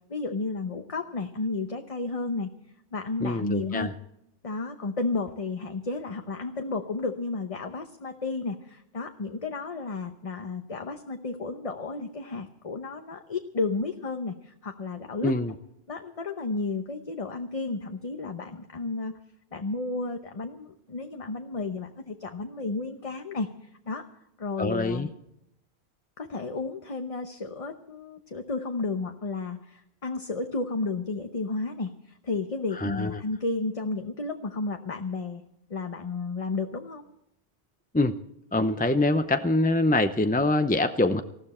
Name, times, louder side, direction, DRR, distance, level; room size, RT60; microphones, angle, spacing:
voice 1, 0.1-2.5 2.9-3.9 4.4-15.3 15.9-19.2 19.5-23.5 23.9-24.0 24.4-25.1 26.2-35.4 35.7-37.0, left 3 dB, 35° left, 5 dB, 0.9 m, -32 dB
voice 2, 3.2-3.9 15.2-15.5 24.6-25.1 32.8-33.2 37.9-38.1 38.5-41.2, left 2 dB, 10° left, 8 dB, 0.4 m, -24 dB
19.5 x 14.5 x 4.3 m, 0.79 s
omnidirectional pair, 1.1 m